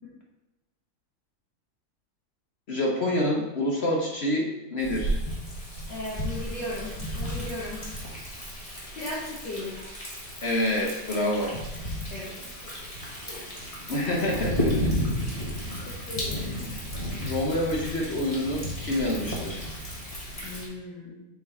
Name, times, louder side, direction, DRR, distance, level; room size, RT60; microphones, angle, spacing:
voice 1, 2.7-5.2 10.4-11.6 13.9-14.7 16.6-16.7 17.2-19.6, left 1 dB, 50° left, -1 dB, 0.8 m, -27 dB
Thunder, 4.8-20.6, equal, 20° left, 1.6 m, -33 dB
voice 2, 5.9-7.8 8.9-9.8 12.1-12.3 12.6-12.7 13.3-13.5 15.2-15.5 16.1-16.7 20.4-21.2, left 2 dB, 80° left, -7 dB, 2.0 m, -37 dB
6.9 x 4.6 x 4.2 m, 1.1 s
omnidirectional pair, 1.9 m